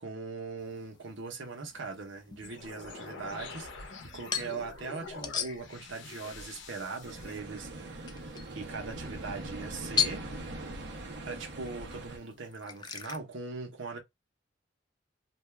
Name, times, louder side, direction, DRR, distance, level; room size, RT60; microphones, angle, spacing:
voice 1, 0.0-8.0 8.5-10.2 11.2-14.0, right 4 dB, 85° right, 1.0 m, -40 dB
sound 1, 0.6-13.2, left 7 dB, 25° left, 0.3 m, -40 dB
sound 2, 2.4-7.4, left 3 dB, 70° left, 0.7 m, -45 dB
sound 3, 7.0-12.2, right 2 dB, 65° right, 0.9 m, -42 dB
2.6 x 2.3 x 3.2 m
head